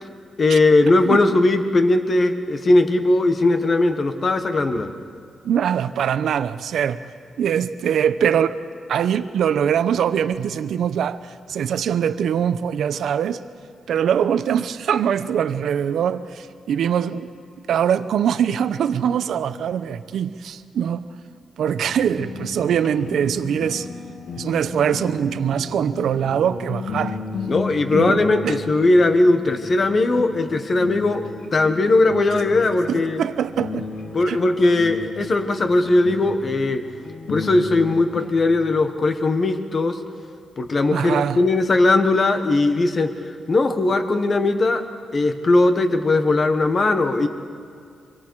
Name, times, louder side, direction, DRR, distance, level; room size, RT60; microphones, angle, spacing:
voice 1, 0.4-4.9 27.5-31.2 31.5-33.2 34.1-36.8 37.3-40.0 40.6-43.1 43.5-44.8 45.1-47.3, left 2 dB, 35° left, 8 dB, 1.2 m, -19 dB
voice 2, 1.1-1.4 5.4-7.0 7.4-8.6 8.9-11.2 11.5-13.4 13.9-17.3 17.7-21.0 21.6-23.9 24.4-27.2 27.9-28.2 28.4-28.6 32.9-33.9 34.3-34.4 40.9-41.4, right 8 dB, 80° right, 12 dB, 0.7 m, -22 dB
sound 1, 21.8-38.3, left 4 dB, 65° left, 2.4 m, -34 dB
25.0 x 24.5 x 4.7 m, 2.3 s
wide cardioid pair, 165°, 0 cm